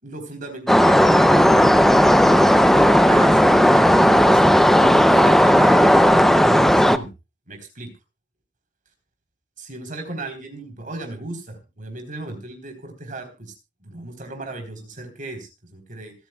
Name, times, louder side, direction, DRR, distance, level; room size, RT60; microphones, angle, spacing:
voice 1, 0.0-1.6 2.4-4.4 4.8-7.1 7.5-7.9 9.6-13.5 13.8-16.1, right 2 dB, 45° right, 4 dB, 3.9 m, -36 dB
sound 1, 0.7-7.0, equal, ahead, 0.5 m, -14 dB
26.0 x 9.1 x 2.3 m, 0.28 s
head